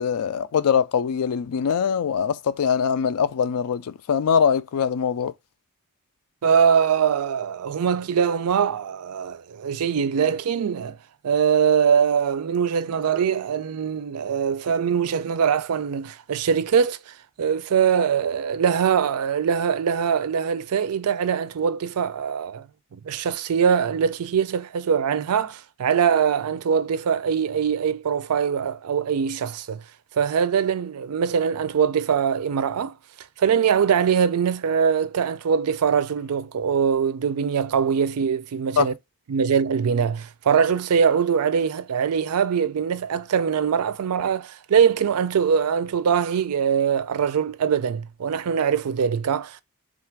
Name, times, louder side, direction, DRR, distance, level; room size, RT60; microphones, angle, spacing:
voice 1, 0.0-5.3 38.8-38.9, left 7 dB, 85° left, 0.4 m, -22 dB
voice 2, 6.4-11.0 11.2-22.7 22.9-29.8 30.1-32.9 33.4-38.9 39.3-49.6, right 7 dB, 85° right, 0.4 m, -22 dB
3.8 x 2.5 x 4.4 m
head